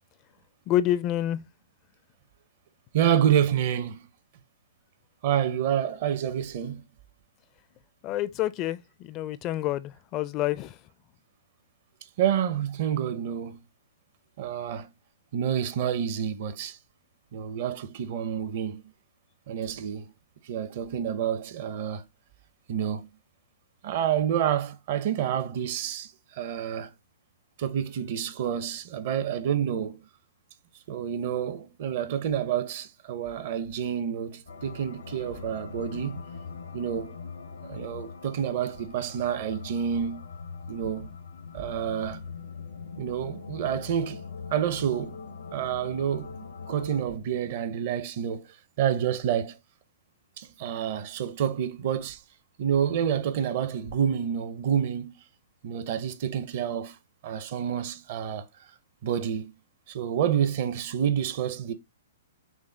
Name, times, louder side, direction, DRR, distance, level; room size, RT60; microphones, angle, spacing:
voice 1, 0.7-1.4 8.0-10.8, left 13 dB, 35° left, 0.4 m, -28 dB
voice 2, 2.9-4.1 5.2-6.8 12.2-13.6 14.4-14.9 15.3-16.8 17.3-18.8 19.5-20.1 20.4-22.0 22.7-23.1 23.8-26.9 27.6-30.0 30.9-36.3 36.7-37.2 37.7-40.3 40.7-41.1 41.5-42.3 43.0-44.2 44.5-45.2 45.5-46.3 46.7-48.5 48.8-49.6 50.4-52.2 52.6-55.1 55.6-57.0 57.2-58.4 59.0-59.5 59.9-61.7, right 9 dB, 50° right, 0.7 m, -28 dB
sound 1, 34.5-47.0, left 5 dB, 90° left, 1.0 m, -41 dB
6.1 x 2.1 x 3.9 m
hypercardioid pair, 130°, 0 cm